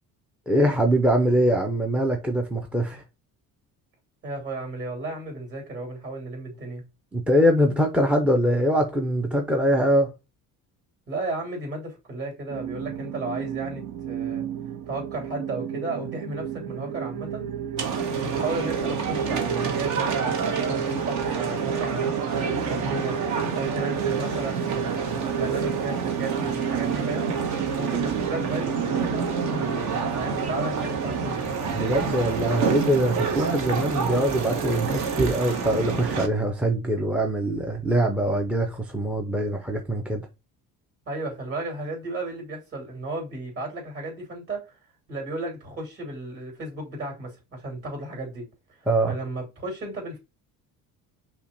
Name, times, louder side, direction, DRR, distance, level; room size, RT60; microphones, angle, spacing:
voice 1, 0.5-3.0 7.1-10.1 31.7-40.3 48.9-49.1, right 1 dB, 5° right, 0.4 m, -23 dB
voice 2, 4.2-6.8 11.1-14.4 14.9-17.5 18.2-23.2 23.5-27.3 27.8-31.5 41.1-44.7 45.1-48.5 48.8-50.2, right 2 dB, 40° right, 3.0 m, -34 dB
sound 1, 12.5-29.8, right 9 dB, 90° right, 0.6 m, -32 dB
sound 2, 17.8-36.3, right 5 dB, 60° right, 1.0 m, -28 dB
5.7 x 2.2 x 3.9 m
cardioid pair, 145°, 34 cm